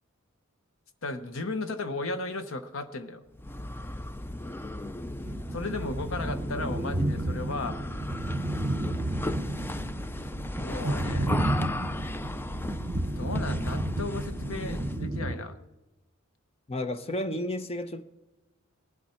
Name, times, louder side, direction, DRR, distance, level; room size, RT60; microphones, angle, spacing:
voice 1, 1.0-3.2 5.5-7.8 10.6-11.4 13.2-15.6, left 2 dB, 70° left, 0.9 m, -35 dB
sound 1, 3.3-15.1, left 1 dB, 10° left, 0.3 m, -36 dB
sound 2, 5.2-15.3, right 1 dB, 40° right, 1.0 m, -32 dB
voice 2, 16.7-18.0, left 1 dB, 30° left, 0.7 m, -32 dB
18.0 x 11.5 x 4.4 m
head